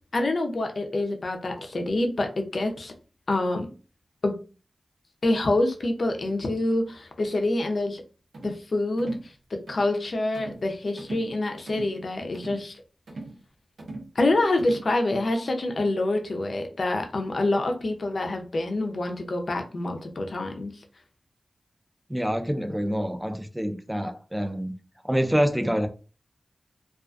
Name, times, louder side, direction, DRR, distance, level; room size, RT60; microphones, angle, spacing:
voice 1, 0.1-2.9 3.3-3.7 4.2-4.3 5.2-8.0 8.4-9.2 9.7-12.8 14.2-20.7, left 2 dB, 65° left, 0.5 m, -26 dB
sound 1, 8.3-8.6 9.0-9.3 9.7-9.9 10.3-10.7 11.0-11.3 11.7-12.0 12.3-12.7 13.1-13.4 13.8-14.1 14.6-14.9, right 2 dB, 80° right, 0.7 m, -39 dB
voice 2, 22.1-24.7 25.0-25.9, equal, 10° right, 0.4 m, -26 dB
2.3 x 2.3 x 2.4 m
cardioid pair, 55°, 0 cm